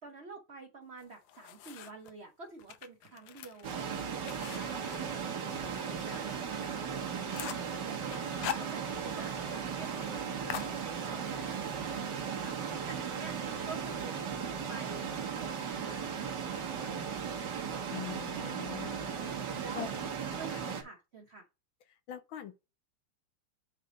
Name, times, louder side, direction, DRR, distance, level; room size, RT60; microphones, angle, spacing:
voice 1, 0.0-13.4 13.6-14.2 14.7-19.9 20.3-21.5, right 3 dB, 80° right, 0.5 m, -50 dB
sound 1, 1.0-2.1 2.6-5.8 6.2-6.3 6.7-6.8 7.0-7.7 8.1-9.2 9.5-9.6 9.9-10.1 10.5-11.3, left 11 dB, 90° left, 1.5 m, -42 dB
sound 2, 3.6-20.8, right 7 dB, 55° right, 1.6 m, -37 dB
voice 2, 17.9-19.3 19.7-19.9 22.1-22.6, left 11 dB, 70° left, 1.3 m, -43 dB
9.0 x 3.3 x 3.8 m
omnidirectional pair, 2.4 m